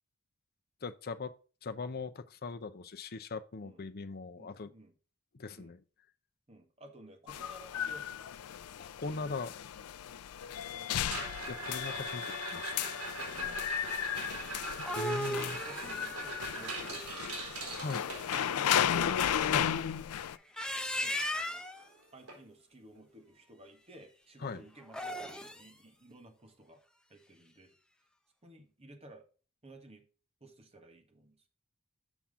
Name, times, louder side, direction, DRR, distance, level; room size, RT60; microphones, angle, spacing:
voice 1, 0.8-1.3 1.6-4.7 5.3-5.8 8.8-9.5 11.5-12.8 14.9-15.6 17.7-18.0 19.1-19.2 19.5-19.7 24.4-24.6, left 4 dB, 45° left, 0.6 m, -40 dB
voice 2, 4.4-4.9 5.6-5.8 6.5-8.4 10.4-11.0 13.1-14.4 15.7-17.8 18.8-19.6 21.0-21.6 22.1-26.8 27.1-27.7 28.4-29.2 29.6-30.0 30.4-31.4, right 2 dB, 30° right, 1.5 m, -55 dB
sound 1, 7.3-20.4, left 9 dB, 90° left, 0.4 m, -35 dB
sound 2, 10.9-18.9 21.2-21.3 21.5-21.9 22.3-22.4 22.9-23.0 24.9-25.0, right 3 dB, 80° right, 3.5 m, -42 dB
sound 3, 14.8-17.6 20.3-21.8 24.8-25.7, equal, 5° left, 0.6 m, -37 dB
7.2 x 5.9 x 3.6 m
head